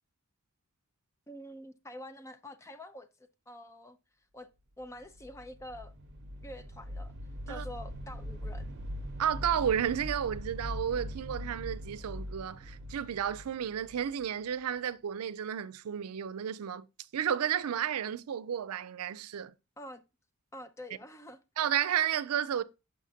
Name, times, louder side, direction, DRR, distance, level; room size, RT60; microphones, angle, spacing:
voice 1, 1.3-4.0 4.3-4.5 4.8-5.9 6.4-7.1 7.5-8.8 19.8-20.0 20.5-21.4, left 1 dB, 15° left, 0.4 m, -46 dB
sound 1, 5.0-14.8, equal, 50° right, 0.7 m, -42 dB
voice 2, 9.2-16.9 17.1-19.5 21.6-22.6, right 9 dB, 90° right, 0.4 m, -32 dB
6.3 x 5.7 x 2.7 m
head